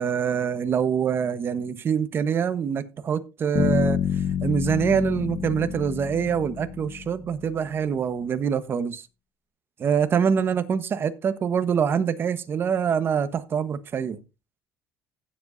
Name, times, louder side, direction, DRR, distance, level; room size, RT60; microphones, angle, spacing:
voice 1, 0.0-9.1 9.8-14.2, right 7 dB, 40° right, 1.2 m, -25 dB
Bass guitar, 3.6-7.5, left 9 dB, 55° left, 1.5 m, -28 dB
16.5 x 7.5 x 2.7 m
cardioid pair, 105°, 6 cm